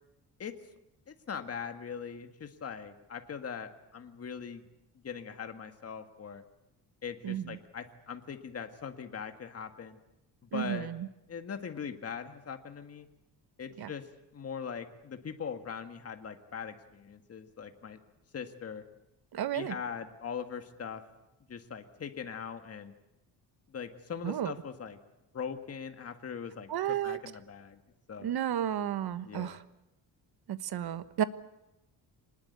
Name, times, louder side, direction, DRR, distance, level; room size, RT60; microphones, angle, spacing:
voice 1, 1.1-4.7 5.0-6.4 7.0-10.0 10.4-10.9 11.3-13.1 13.6-14.1 14.3-18.0 18.3-18.8 19.5-21.0 21.5-22.9 23.7-25.0 25.3-27.8 28.1-28.3 29.2-29.6, left 6 dB, 35° left, 7 dB, 1.8 m, -41 dB
voice 2, 7.2-7.6 10.5-11.1 13.8-13.9 19.3-19.7 24.2-24.5 26.7-27.2 28.2-29.6 30.5-31.2, right 10 dB, 65° right, 13 dB, 1.3 m, -32 dB
25.5 x 20.0 x 8.2 m, 0.90 s
cardioid pair, 145°, 41 cm